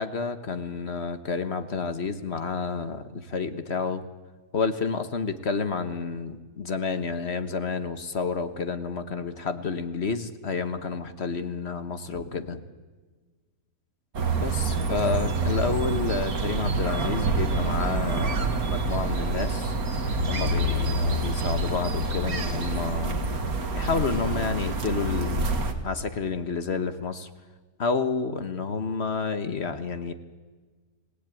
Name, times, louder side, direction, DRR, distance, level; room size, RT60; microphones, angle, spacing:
voice 1, 0.0-4.0 4.5-12.6 14.4-19.8 20.3-23.3 23.7-25.4 25.8-27.3 27.8-30.1, left 4 dB, 45° left, 10 dB, 1.4 m, -30 dB
sound 1, 14.1-25.7, right 2 dB, 65° right, 2.3 m, -27 dB
27.5 x 17.5 x 9.1 m, 1.4 s
omnidirectional pair, 1.7 m